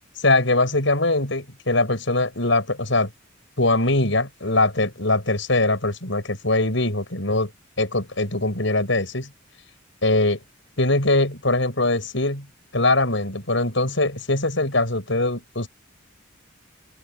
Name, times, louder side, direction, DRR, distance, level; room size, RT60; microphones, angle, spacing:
voice 1, 0.2-3.1 3.6-7.5 7.8-9.3 10.0-10.4 10.8-12.4 12.7-15.7, left 2 dB, 70° left, 7.1 m, -22 dB
open air
head